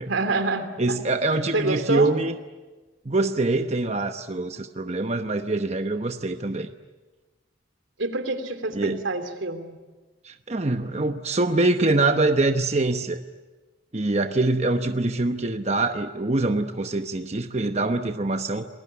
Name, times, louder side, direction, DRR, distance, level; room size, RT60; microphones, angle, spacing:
voice 1, 0.1-1.0 1.3-2.1 8.0-9.8, right 2 dB, 85° right, 9 dB, 2.9 m, -27 dB
voice 2, 0.8-2.3 3.1-6.7 8.7-9.0 10.2-13.2 13.9-18.7, right 2 dB, 35° right, 7 dB, 0.9 m, -24 dB
28.0 x 20.5 x 9.6 m, 1.2 s
head